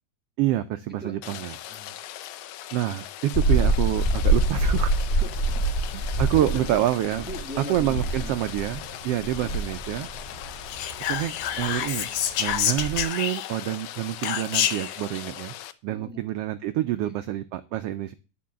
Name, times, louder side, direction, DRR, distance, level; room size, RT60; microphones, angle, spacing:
voice 1, 0.4-1.5 2.7-4.9 5.9-7.2 7.7-10.1 11.0-12.1 12.4-15.5 15.8-18.1, right 13 dB, 85° right, 11 dB, 1.3 m, -27 dB
voice 2, 1.0-2.0 5.1-6.8 7.2-8.4 9.2-9.5 15.9-16.2 17.0-17.2, equal, 15° right, 3 dB, 0.3 m, -41 dB
Rain, 1.2-15.7, left 12 dB, 85° left, 2.1 m, -40 dB
sound 1, 3.3-13.0, right 2 dB, 35° left, 1.1 m, -27 dB
Whispering, 10.7-13.7 14.2-15.0, left 10 dB, 70° left, 1.8 m, -27 dB
11.0 x 4.7 x 7.3 m, 0.33 s
omnidirectional pair, 3.4 m